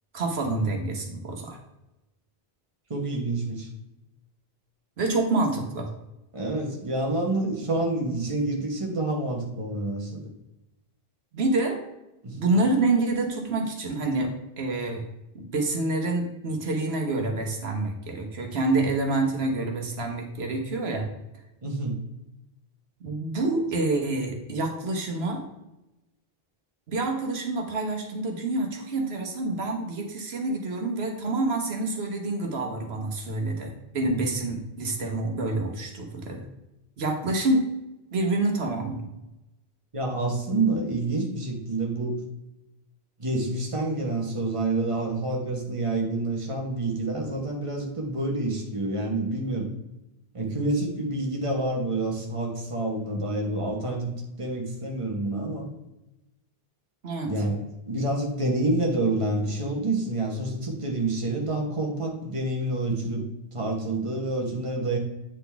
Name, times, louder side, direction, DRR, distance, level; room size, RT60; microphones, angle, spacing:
voice 1, 0.1-1.6 5.0-5.9 11.3-11.8 12.3-15.0 15.3-21.1 23.0-25.5 26.9-36.4 37.0-37.7 38.1-39.1 57.0-57.3, right 2 dB, 85° right, 3 dB, 1.3 m, -27 dB
voice 2, 2.9-3.7 6.3-10.2 12.2-12.4 21.6-22.0 39.9-42.2 43.2-49.7 50.3-55.7 57.2-63.2 63.5-65.0, right 2 dB, 30° right, 0 dB, 1.3 m, -28 dB
8.8 x 4.0 x 3.4 m, 0.94 s
omnidirectional pair, 1.0 m